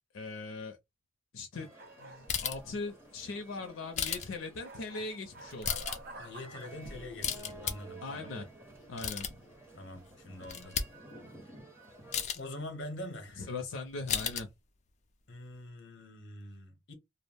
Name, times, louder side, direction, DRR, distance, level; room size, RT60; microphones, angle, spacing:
voice 1, 0.1-0.8 1.3-1.7 2.0-5.7 8.0-8.5 8.9-9.3 13.4-14.5, left 3 dB, 85° left, 0.5 m, -40 dB
sound 1, 1.5-12.2, right 1 dB, 15° right, 1.1 m, -53 dB
sound 2, 1.8-2.3 4.6-6.8, right 2 dB, 45° right, 0.6 m, -48 dB
sound 3, 2.3-2.7 3.9-4.3 5.4-6.0 6.8-7.7 8.7-9.5 10.0-10.1 10.4-10.8 12.1-12.4 14.1-14.4, left 8 dB, 35° left, 0.3 m, -34 dB
voice 2, 6.2-8.3 9.7-10.8 12.3-13.5 15.3-16.9, left 1 dB, 65° left, 0.8 m, -44 dB
2.3 x 2.0 x 3.3 m
head